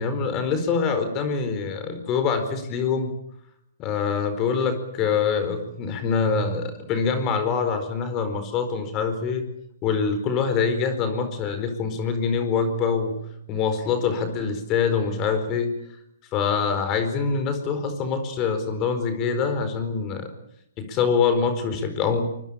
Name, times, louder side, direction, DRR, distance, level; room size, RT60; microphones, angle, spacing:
voice 1, 0.0-3.1 3.8-9.4 9.8-13.1 13.5-15.7 16.3-20.3 20.8-22.2, left 5 dB, 25° left, 9 dB, 4.5 m, -24 dB
24.5 x 23.0 x 8.8 m, 0.76 s
hypercardioid pair, 145°, 0 cm